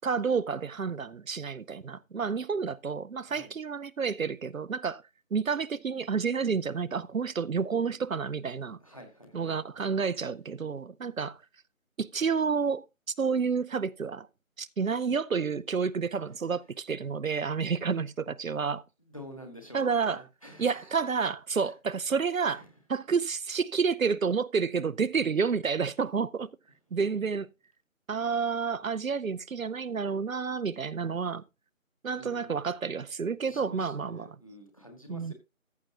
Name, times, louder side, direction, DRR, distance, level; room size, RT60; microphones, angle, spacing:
voice 1, 0.0-5.0 5.3-8.8 9.3-11.4 12.0-12.8 13.2-14.3 14.6-18.8 19.7-20.2 20.6-22.6 22.9-26.5 26.9-27.5 28.1-31.4 32.0-34.2 35.1-35.3, right 5 dB, 75° right, 0.6 m, -30 dB
voice 2, 8.6-9.6 17.8-17.9 19.0-21.0 21.6-21.7 22.4-22.7 32.2-32.6 33.4-35.3, equal, 25° left, 1.7 m, -48 dB
14.0 x 6.6 x 2.8 m
figure-of-eight pair, 175°, 41 cm